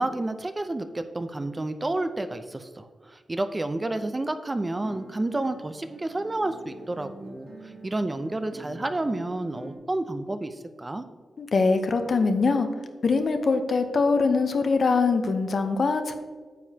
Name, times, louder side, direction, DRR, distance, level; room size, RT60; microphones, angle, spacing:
voice 1, 0.0-7.5 7.8-11.0, right 2 dB, 25° right, 9 dB, 0.6 m, -30 dB
Guitar, 4.6-9.7, right 2 dB, 55° right, 1.6 m, -45 dB
voice 2, 11.4-12.7 13.0-16.1, left 4 dB, 60° left, 7 dB, 0.8 m, -23 dB
9.3 x 7.2 x 2.8 m, 1.5 s
cardioid pair, 80°, 0 cm